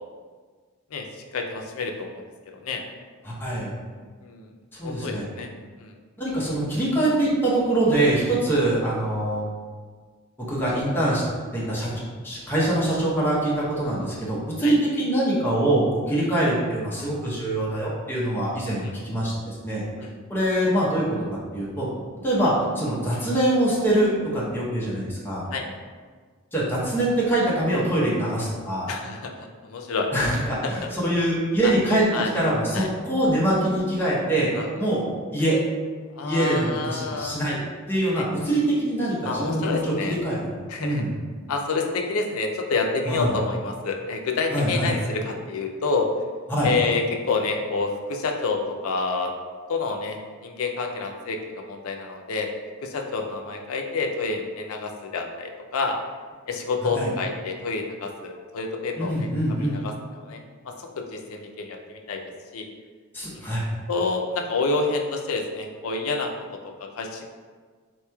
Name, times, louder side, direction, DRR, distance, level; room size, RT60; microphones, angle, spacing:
voice 1, 1.3-2.3 2.6-2.8 4.2-4.5 4.8-5.5 5.8-5.9 14.6-14.7 18.8-18.9 20.0-20.1 25.5-25.6 28.9-30.1 30.6-30.8 31.6-31.7 32.1-32.3 32.7-32.9 34.5-34.8 36.1-37.4 38.2-38.3 39.2-40.2 40.7-41.0 41.5-46.1 46.6-49.3 49.7-52.5 52.8-56.0 56.5-62.2 62.5-62.7 63.9-66.3 66.8-67.3, left 4 dB, 80° left, 3 dB, 0.4 m, -28 dB
voice 2, 3.2-3.7 4.7-5.2 6.2-9.5 10.5-11.2 11.5-11.9 12.2-19.8 20.3-21.2 21.5-21.9 22.2-25.4 26.5-28.9 30.1-32.0 32.3-35.1 35.3-35.6 36.2-37.6 37.9-40.4 40.8-41.1 43.1-43.3 44.5-44.9 46.5-46.7 56.9-57.1 59.0-59.8 63.1-63.6, right 1 dB, 10° left, -7 dB, 0.8 m, -24 dB
4.0 x 3.0 x 2.3 m, 1.5 s
head